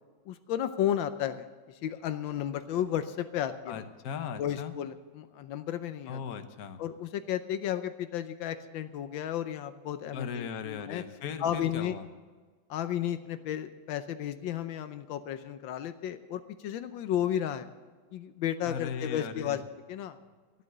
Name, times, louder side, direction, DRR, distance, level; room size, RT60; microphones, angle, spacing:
voice 1, 0.3-1.5 1.8-3.8 4.4-6.2 6.8-11.0 11.4-11.9 12.7-17.7 18.1-19.6 19.9-20.2, left 10 dB, 80° left, 10 dB, 1.4 m, -33 dB
voice 2, 3.7-4.7 6.1-6.8 10.1-12.0 18.6-19.6, left 7 dB, 55° left, 8 dB, 1.3 m, -38 dB
13.0 x 11.0 x 6.6 m, 1.5 s
omnidirectional pair, 2.1 m